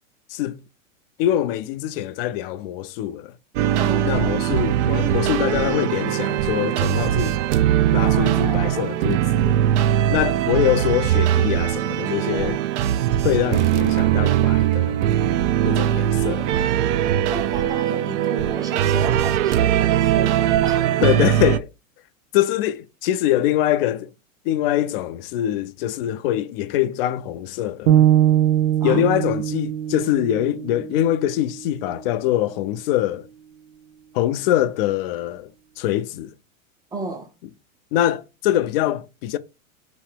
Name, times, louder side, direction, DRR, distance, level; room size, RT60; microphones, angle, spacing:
voice 1, 0.3-0.6 1.2-3.3 4.0-7.4 7.9-9.6 10.1-12.6 13.2-15.0 15.6-16.5 21.0-21.7 22.3-24.1 24.5-28.1 28.8-33.3 34.1-35.5 35.8-36.3 37.9-39.4, left 12 dB, 45° left, 0.5 m, -23 dB
sound 1, 3.6-21.6, right 11 dB, 60° right, 0.5 m, -20 dB
voice 2, 3.8-4.4 8.0-8.9 12.3-12.6 16.9-21.1 28.8-29.1 36.9-37.3, right 3 dB, 10° right, 0.5 m, -33 dB
sound 2, 27.9-32.0, right 11 dB, 80° right, 0.8 m, -21 dB
3.2 x 3.1 x 4.5 m
hypercardioid pair, 125°, 40 cm